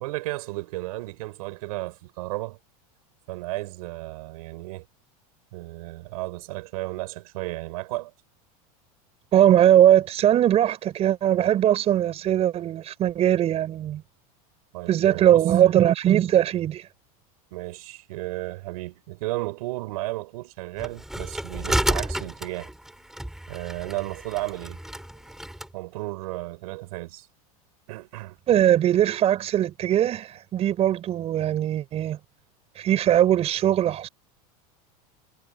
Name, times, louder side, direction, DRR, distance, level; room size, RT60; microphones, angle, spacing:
voice 1, 0.0-2.6 3.3-4.9 5.5-8.1 14.7-15.5 17.5-22.7 23.5-24.8 25.7-27.3 27.9-28.4, right 20 dB, 75° right, 7.5 m, -34 dB
voice 2, 9.3-14.0 14.9-16.9 28.5-32.2 32.8-34.1, right 11 dB, 30° right, 5.8 m, -20 dB
sound 1, 20.8-25.7, right 1 dB, ahead, 6.0 m, -31 dB
supercardioid pair, 145°, 19 cm